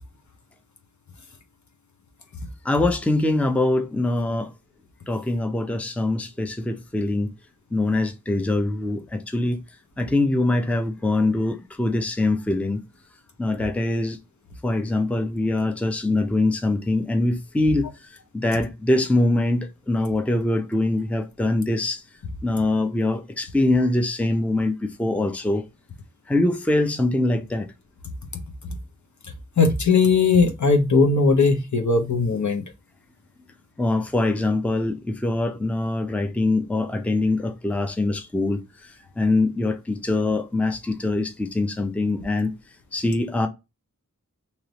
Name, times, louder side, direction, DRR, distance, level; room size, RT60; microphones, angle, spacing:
voice 1, 2.6-4.5 5.1-7.3 7.7-9.6 10.0-12.8 13.4-14.2 14.6-22.0 22.4-25.6 26.3-27.7 33.8-42.5 42.9-43.5, left 2 dB, 5° left, 0.5 m, -23 dB
voice 2, 29.6-32.6, left 4 dB, 60° left, 0.9 m, -18 dB
3.2 x 2.9 x 3.9 m
wide cardioid pair, 60°, 32 cm